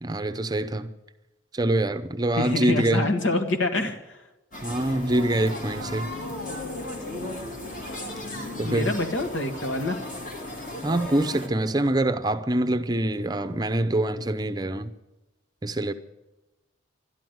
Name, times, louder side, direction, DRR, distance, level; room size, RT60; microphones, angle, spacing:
voice 1, 0.0-0.9 1.5-3.0 4.6-6.1 8.6-8.9 10.8-14.9 15.6-15.9, right 1 dB, 20° right, 0.6 m, -25 dB
voice 2, 2.4-4.2 8.6-10.0, left 2 dB, 80° left, 1.8 m, -26 dB
sound 1, 4.5-11.5, left 1 dB, 40° left, 2.5 m, -35 dB
12.5 x 11.0 x 9.3 m
head